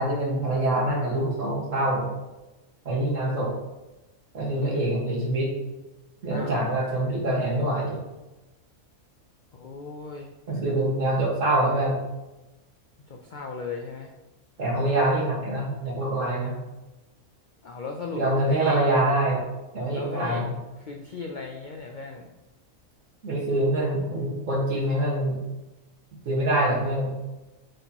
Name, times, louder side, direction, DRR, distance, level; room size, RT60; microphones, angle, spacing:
voice 1, 0.0-2.1 2.9-3.5 4.3-5.5 6.2-8.0 10.5-12.0 14.6-16.6 18.1-19.5 19.7-20.5 23.2-25.4 26.3-27.1, right 1 dB, 60° right, -4 dB, 2.0 m, -25 dB
voice 2, 4.6-4.9 6.3-6.7 9.5-10.3 13.1-14.1 17.6-18.8 19.9-20.4 20.8-22.3, left 4 dB, 75° left, 1 dB, 0.4 m, -37 dB
7.8 x 4.3 x 2.9 m, 1.0 s
omnidirectional pair, 1.5 m